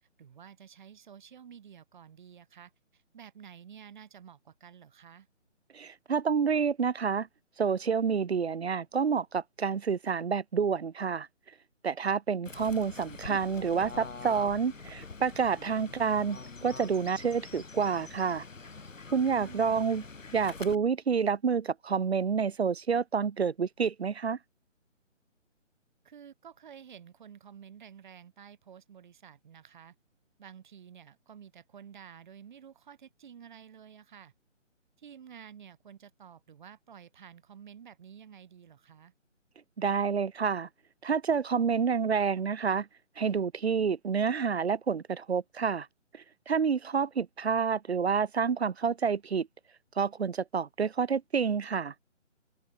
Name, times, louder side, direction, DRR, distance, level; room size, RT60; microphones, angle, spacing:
voice 1, 0.2-5.3 19.3-19.8 26.0-30.0 30.4-34.3 35.0-39.1, right 8 dB, 40° right, 7.7 m, -51 dB
voice 2, 5.7-7.3 7.6-11.3 11.8-18.4 19.1-20.0 20.3-24.4 39.8-40.7 41.0-42.9 43.2-45.9 46.1-49.5 50.0-51.9, right 6 dB, 55° right, 1.1 m, -28 dB
Fowl / Bird, 12.5-20.8, left 4 dB, 80° left, 1.9 m, -45 dB
open air
figure-of-eight pair, 155°, 38 cm